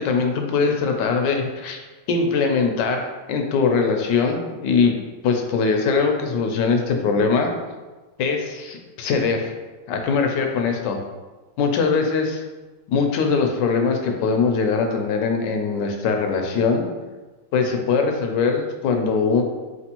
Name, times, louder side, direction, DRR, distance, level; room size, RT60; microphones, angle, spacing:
voice 1, 0.0-1.8 2.1-5.0 5.2-7.5 8.2-9.5 9.9-11.0 11.6-12.4 12.9-16.8 17.5-19.4, left 5 dB, 85° left, 3 dB, 1.3 m, -21 dB
4.5 x 3.4 x 2.9 m, 1.2 s
omnidirectional pair, 1.8 m